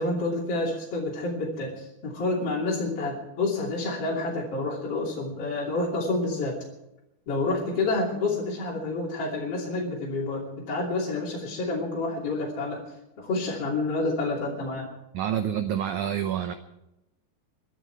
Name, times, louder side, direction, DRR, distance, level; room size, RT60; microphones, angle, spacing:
voice 1, 0.0-6.6 7.3-12.8 13.2-14.9, left 2 dB, 40° left, -4 dB, 3.6 m, -29 dB
voice 2, 15.1-16.5, right 9 dB, 80° right, 9 dB, 1.8 m, -27 dB
23.0 x 12.0 x 4.6 m, 0.88 s
omnidirectional pair, 4.5 m